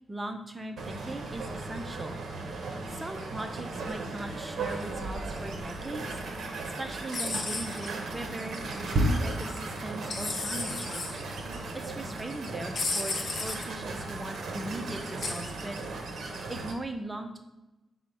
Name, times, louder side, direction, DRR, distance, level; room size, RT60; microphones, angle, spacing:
voice 1, 0.1-2.2 2.9-6.2 6.6-8.6 9.2-11.2 11.7-15.8 16.5-17.4, right 1 dB, 15° right, 5 dB, 0.4 m, -39 dB
sound 1, 0.8-16.7, right 2 dB, 60° right, 0.6 m, -35 dB
sound 2, 7.1-7.9 10.1-11.1 12.8-13.7 15.2-15.5, left 3 dB, 45° left, 0.5 m, -33 dB
4.9 x 2.0 x 4.2 m, 1.0 s
wide cardioid pair, 165°, 0 cm